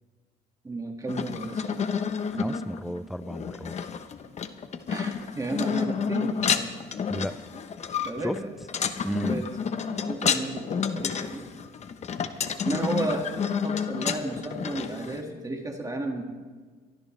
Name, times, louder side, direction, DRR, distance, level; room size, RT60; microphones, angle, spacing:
voice 1, 0.6-1.8 2.3-2.6 4.9-6.6 8.0-8.5 9.2-9.4 9.9-11.5 12.2-12.3 12.6-13.3 13.6-16.2, right 2 dB, 20° right, 2 dB, 2.0 m, -33 dB
sound 1, 1.1-15.2, left 7 dB, 40° left, 1.0 m, -30 dB
voice 2, 2.4-3.7 7.1-7.4 8.2-8.4 9.0-9.5, equal, ahead, 15 dB, 0.3 m, -32 dB
23.0 x 13.5 x 3.3 m, 1.4 s
cardioid pair, 110°, 17 cm